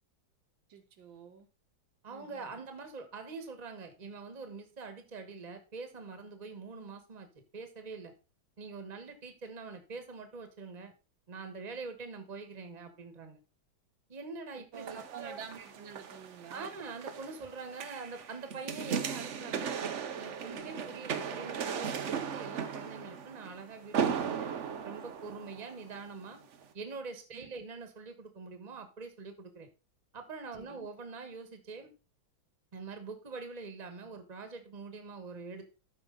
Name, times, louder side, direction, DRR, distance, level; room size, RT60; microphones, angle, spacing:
voice 1, 0.7-1.5 2.1-2.6 14.7-16.8 20.4-20.9 27.3-27.5 30.6-30.9, right 7 dB, 70° right, 5 dB, 1.8 m, -49 dB
voice 2, 2.0-7.3 7.5-8.1 8.6-10.9 11.3-13.4 14.1-15.4 16.5-19.7 20.2-24.5 24.8-26.4 26.7-29.7 30.1-31.9 32.7-35.7, right 4 dB, 25° right, 8 dB, 1.3 m, -44 dB
sound 1, 14.7-26.0 26.5-26.6, right 7 dB, 55° right, 0.8 m, -37 dB
13.0 x 5.0 x 3.9 m, 0.31 s
omnidirectional pair, 2.2 m